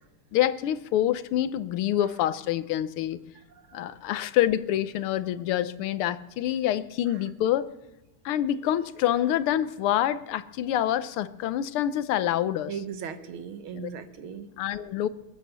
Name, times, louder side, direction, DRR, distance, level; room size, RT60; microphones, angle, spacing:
voice 1, 0.3-3.2 3.7-7.7 8.2-12.7 13.7-13.9 14.6-15.1, left 12 dB, 85° left, 15 dB, 1.7 m, -26 dB
voice 2, 3.7-4.0 12.7-14.5, right 7 dB, 75° right, 10 dB, 2.0 m, -38 dB
21.5 x 9.4 x 6.8 m, 0.99 s
omnidirectional pair, 2.3 m